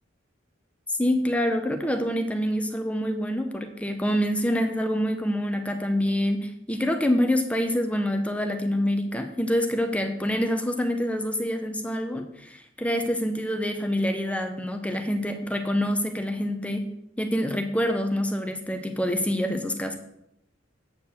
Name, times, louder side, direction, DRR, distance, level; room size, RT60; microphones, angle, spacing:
voice 1, 0.9-16.9 17.2-20.0, equal, 5° left, 5 dB, 0.6 m, -26 dB
8.2 x 4.6 x 6.9 m, 0.81 s
head